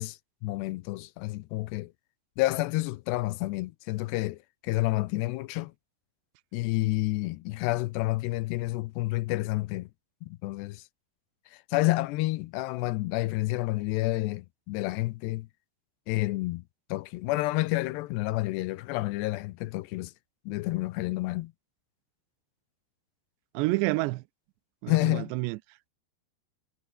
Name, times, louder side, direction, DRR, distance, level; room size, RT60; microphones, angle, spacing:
voice 1, 0.0-1.9 2.4-5.7 6.5-9.9 10.2-10.8 11.5-15.5 16.1-16.6 16.9-20.1 20.5-21.5 24.9-25.3, left 19 dB, 80° left, 2.7 m, -29 dB
voice 2, 23.5-24.2 24.8-25.6, right 21 dB, 85° right, 2.8 m, -28 dB
omnidirectional pair, 5.1 m